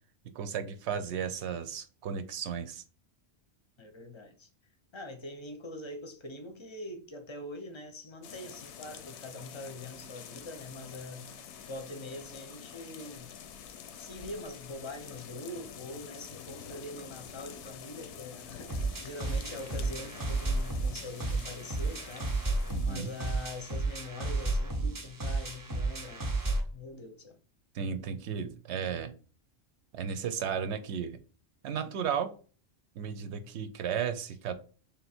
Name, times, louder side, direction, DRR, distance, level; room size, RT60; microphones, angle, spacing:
voice 1, 0.3-2.8 22.7-23.1 27.7-29.1 29.9-31.2 31.6-32.3 33.0-34.5, right 7 dB, 90° right, 0.9 m, -34 dB
voice 2, 3.8-4.5 4.9-13.3 14.0-26.4 26.7-27.4 33.3-33.5, left 2 dB, 35° left, 0.5 m, -44 dB
sound 1, 8.2-24.0, left 8 dB, 85° left, 0.9 m, -48 dB
sound 2, 18.7-26.7, right 2 dB, 20° right, 0.6 m, -32 dB
3.5 x 2.9 x 4.2 m
omnidirectional pair, 1.1 m